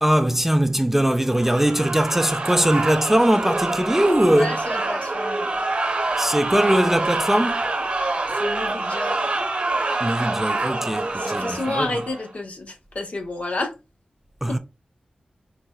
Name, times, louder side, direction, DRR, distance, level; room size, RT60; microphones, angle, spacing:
voice 1, 0.0-4.6 6.2-7.6 10.0-11.9 14.4-14.6, right 1 dB, 10° right, 0.3 m, -21 dB
sound 1, 1.3-12.3, right 2 dB, 45° right, 1.0 m, -26 dB
voice 2, 4.3-5.6 8.4-9.2 11.1-13.7 14.5-14.6, left 2 dB, 55° left, 0.8 m, -30 dB
4.1 x 2.1 x 2.2 m
cardioid pair, 40°, 3 cm